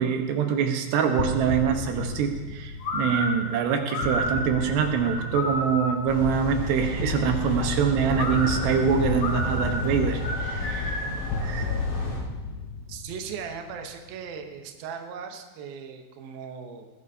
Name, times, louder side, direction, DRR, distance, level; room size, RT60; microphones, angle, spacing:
voice 1, 0.0-11.0 11.4-11.7, right 7 dB, 85° right, 4 dB, 3.3 m, -25 dB
sound 1, 1.2-6.9 8.1-14.4, left 3 dB, 90° left, 3.0 m, -36 dB
sound 2, 2.8-6.1 8.1-11.2, left 1 dB, 70° left, 5.8 m, -31 dB
sound 3, 6.1-12.2, left 3 dB, 35° left, 4.9 m, -31 dB
voice 2, 12.9-16.9, right 6 dB, 70° right, 4 dB, 2.7 m, -38 dB
20.5 x 15.0 x 2.8 m, 1.2 s
omnidirectional pair, 4.7 m